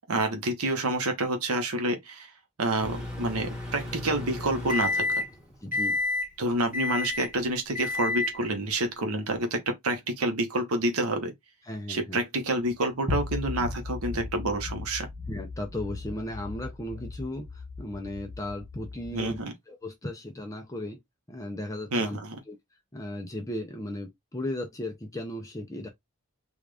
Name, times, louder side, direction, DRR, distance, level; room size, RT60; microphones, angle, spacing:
voice 1, 0.1-2.3 2.6-5.2 6.4-11.3 11.9-15.1 19.1-19.5 21.9-22.4, right 1 dB, 90° right, 1.0 m, -28 dB
Microwave oven, 2.8-5.4 5.7-6.3 6.7-7.3 7.7-8.4, left 3 dB, 5° right, 1.3 m, -30 dB
voice 2, 5.6-6.0 11.6-12.2 15.3-19.4 19.7-21.0 21.3-22.2 22.5-22.6 22.9-25.9, left 1 dB, 15° left, 0.5 m, -36 dB
sound 1, 13.1-19.4, left 3 dB, 30° right, 1.1 m, -37 dB
3.6 x 2.4 x 3.3 m
head